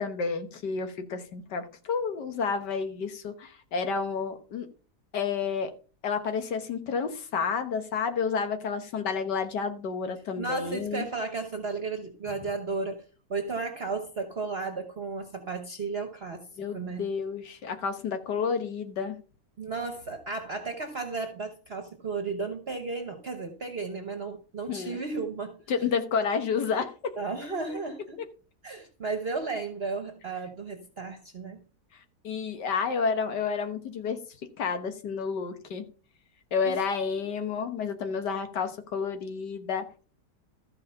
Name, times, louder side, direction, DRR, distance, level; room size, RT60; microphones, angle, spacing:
voice 1, 0.0-4.7 5.1-5.7 6.0-11.0 16.6-19.2 24.7-25.0 25.7-27.1 27.7-27.8 32.2-34.2 34.6-35.9 36.5-40.0, left 5 dB, 90° left, 1.9 m, -30 dB
voice 2, 10.4-13.0 13.3-17.0 19.6-25.6 27.2-28.2 28.6-31.6 36.6-36.8, right 4 dB, 40° right, 1.2 m, -34 dB
13.5 x 4.9 x 5.6 m
omnidirectional pair, 1.8 m